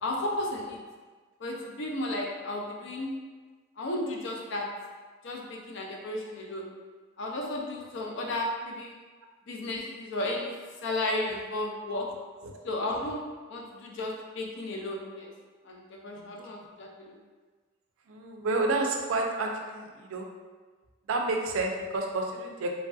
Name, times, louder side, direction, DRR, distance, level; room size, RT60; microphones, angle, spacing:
voice 1, 0.0-0.8 1.4-3.2 3.8-4.7 5.2-6.7 7.2-8.9 9.5-10.5 10.8-12.1 12.6-13.2 13.5-15.3 15.6-17.2, left 1 dB, 65° left, -1 dB, 0.5 m, -33 dB
voice 2, 18.1-20.3 21.1-22.7, right 2 dB, 90° right, 2 dB, 0.4 m, -30 dB
3.1 x 2.6 x 2.3 m, 1.4 s
head